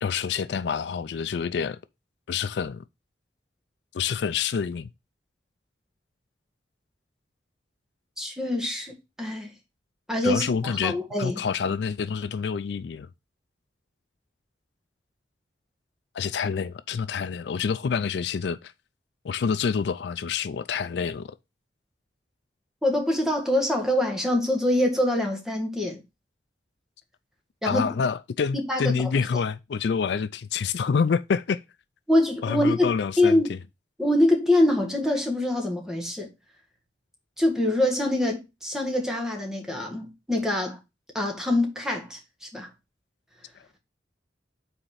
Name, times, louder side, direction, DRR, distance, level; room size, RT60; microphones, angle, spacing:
voice 1, 0.0-1.8 2.3-2.8 3.9-4.9 10.2-13.1 16.1-18.7 19.2-21.4 27.7-31.6 32.4-33.6, left 6 dB, 70° left, 0.4 m, -27 dB
voice 2, 8.2-9.5 10.1-11.4 22.8-26.0 27.6-27.9 28.7-28.9 32.1-33.5 34.0-36.3 37.4-40.8 41.2-42.7, left 1 dB, 5° right, 1.7 m, -24 dB
5.6 x 4.2 x 5.6 m
head